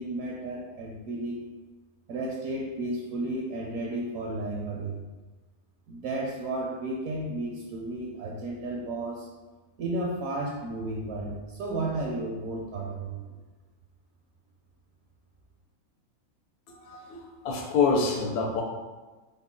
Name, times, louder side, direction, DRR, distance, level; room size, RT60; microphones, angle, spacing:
voice 1, 0.0-1.4 2.1-5.0 5.9-9.3 9.8-13.2, right 2 dB, 75° right, -2 dB, 1.0 m, -33 dB
voice 2, 16.9-17.2 17.4-18.6, left 4 dB, 85° left, 1 dB, 1.1 m, -26 dB
3.7 x 2.1 x 3.7 m, 1.2 s
omnidirectional pair, 1.5 m